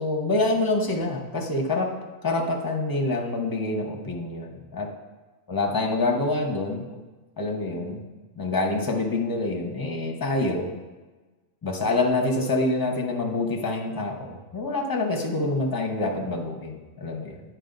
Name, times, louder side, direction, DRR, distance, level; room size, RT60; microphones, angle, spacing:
voice 1, 0.0-4.9 5.5-7.0 7.4-8.1 8.4-10.7 11.6-17.4, left 2 dB, 20° left, 1 dB, 0.8 m, -26 dB
9.9 x 4.7 x 3.9 m, 1.2 s
omnidirectional pair, 1.4 m